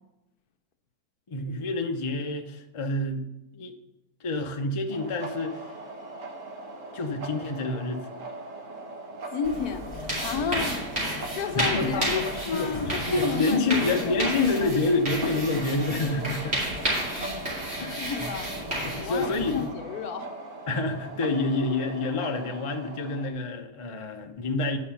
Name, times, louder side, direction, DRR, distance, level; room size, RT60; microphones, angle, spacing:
voice 1, 1.3-3.2 3.5-3.7 4.2-5.6 6.9-8.0 11.5-16.6 17.8-18.3 18.8-19.8 20.7-24.8, left 2 dB, 35° left, 4 dB, 0.5 m, -28 dB
sound 1, 4.9-23.3, right 2 dB, 55° right, 1.4 m, -40 dB
voice 2, 9.3-10.8 11.3-14.7 17.3-17.5 18.0-18.5 19.0-20.4, left 6 dB, 70° left, 7 dB, 1.3 m, -32 dB
sound 2, 9.4-19.7, right 1 dB, 40° right, 3.2 m, -32 dB
9.5 x 5.6 x 5.7 m, 0.92 s
omnidirectional pair, 1.7 m